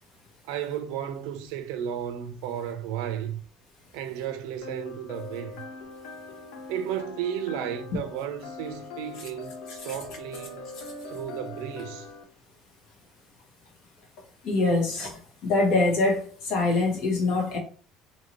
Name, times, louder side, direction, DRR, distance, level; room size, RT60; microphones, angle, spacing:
voice 1, 0.4-3.4 3.9-5.6 6.7-10.7 11.1-12.1, right 9 dB, 80° right, 0.5 m, -33 dB
sound 1, 4.6-12.2, left 3 dB, 70° left, 0.6 m, -42 dB
voice 2, 14.4-17.6, left 3 dB, 50° left, 1.1 m, -24 dB
2.8 x 2.6 x 3.0 m
cardioid pair, 180°, 0 cm